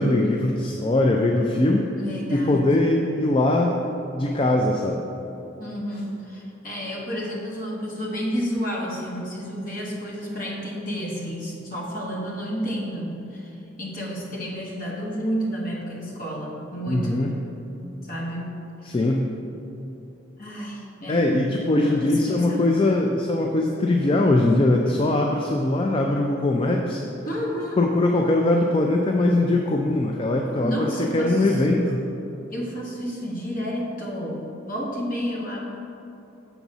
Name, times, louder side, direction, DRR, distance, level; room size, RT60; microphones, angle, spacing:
voice 1, 0.0-1.9 2.3-3.8 4.1-5.0 16.9-17.4 18.8-19.3 21.1-27.0 27.8-32.0, left 2 dB, 25° left, 1 dB, 0.3 m, -21 dB
voice 2, 2.0-3.2 5.6-17.3 18.0-18.6 18.8-18.9 20.4-21.4 21.8-22.7 27.2-27.8 30.6-31.6 32.5-35.6, equal, 45° left, -3 dB, 1.2 m, -31 dB
7.0 x 4.1 x 5.9 m, 2.9 s
head